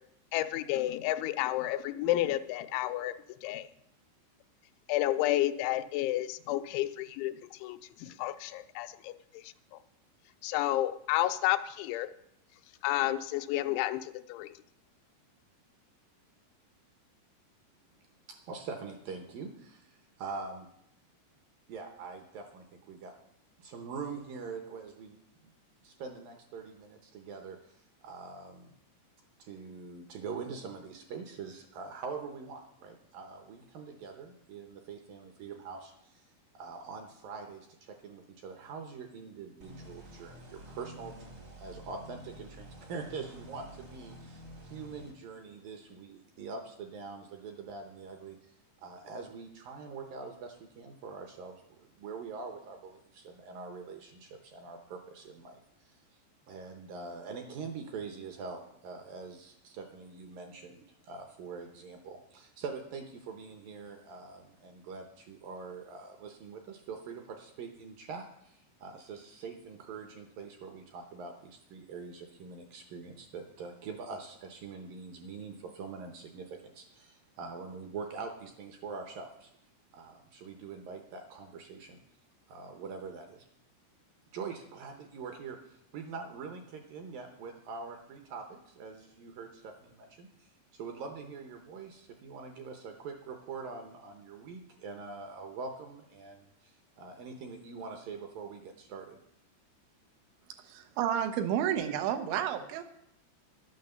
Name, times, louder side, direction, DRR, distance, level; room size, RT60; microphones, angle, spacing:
voice 1, 0.3-3.2 3.4-3.7 4.9-9.8 10.4-12.1 12.8-14.5, left 15 dB, 90° left, 10 dB, 3.0 m, -31 dB
voice 2, 18.3-20.7 21.7-23.1 23.6-25.2 25.8-28.7 29.4-36.2 36.5-41.1 41.6-48.5 48.8-56.0 56.5-79.5 79.9-82.0 82.5-83.5 84.3-99.2, right 5 dB, 70° right, 5 dB, 2.2 m, -44 dB
sound 1, 39.6-45.1, equal, 45° right, 0.8 m, -49 dB
voice 3, 100.6-102.8, right 10 dB, 90° right, 7 dB, 3.4 m, -31 dB
11.5 x 9.4 x 6.8 m, 0.76 s
omnidirectional pair, 5.2 m